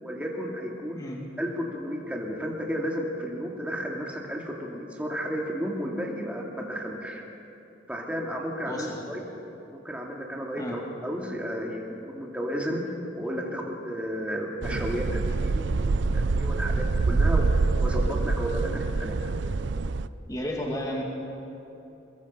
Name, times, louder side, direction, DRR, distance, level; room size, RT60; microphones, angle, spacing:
voice 1, 0.0-1.0 1.4-7.2 7.9-9.2 9.8-12.8 13.1-19.2, equal, 5° right, -1 dB, 2.4 m, -33 dB
voice 2, 8.7-9.0 10.6-10.7 20.3-21.0, equal, 20° left, -1 dB, 2.5 m, -32 dB
sound 1, 14.6-20.1, right 3 dB, 85° right, 0.5 m, -25 dB
23.0 x 22.0 x 5.6 m, 2.9 s
head